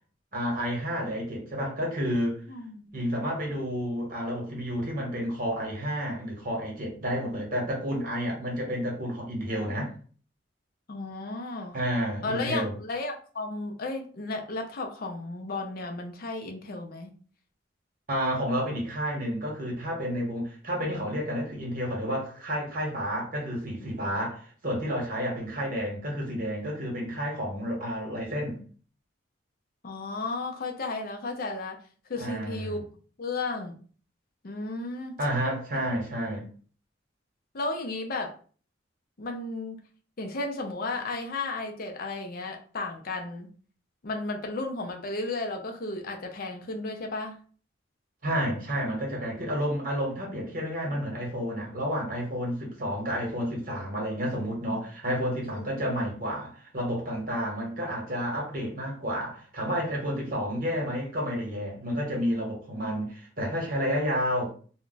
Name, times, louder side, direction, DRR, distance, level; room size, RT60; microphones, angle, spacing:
voice 1, 0.3-2.4 2.9-9.9 11.7-12.7 18.1-28.6 32.2-32.8 35.2-36.5 48.2-64.5, equal, 50° right, 1.1 m, -30 dB
voice 2, 2.5-2.9 10.9-11.8 12.2-17.1 29.8-31.8 32.1-32.8 33.2-33.8 34.4-35.2 37.5-38.3 39.2-39.8 40.2-43.5 44.0-47.4 54.7-54.8 55.4-55.9, left 2 dB, 50° left, 0.5 m, -34 dB
2.3 x 2.2 x 3.8 m
head